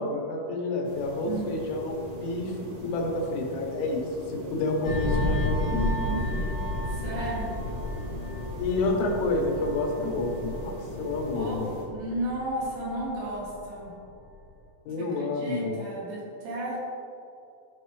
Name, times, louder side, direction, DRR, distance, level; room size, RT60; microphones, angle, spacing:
voice 1, 0.0-4.0 4.3-5.8 8.6-11.7 14.9-15.8, left 2 dB, 80° left, 0 dB, 3.5 m, -29 dB
sound 1, 0.8-11.8, equal, 60° right, 2.6 m, -40 dB
sound 2, 4.8-13.9 14.2-14.5, left 1 dB, 45° left, 1.5 m, -32 dB
voice 2, 5.7-6.5 6.9-7.6 11.3-13.9 15.2-16.8, right 1 dB, 75° right, -6 dB, 4.3 m, -33 dB
12.0 x 6.0 x 3.1 m, 2.7 s
omnidirectional pair, 5.5 m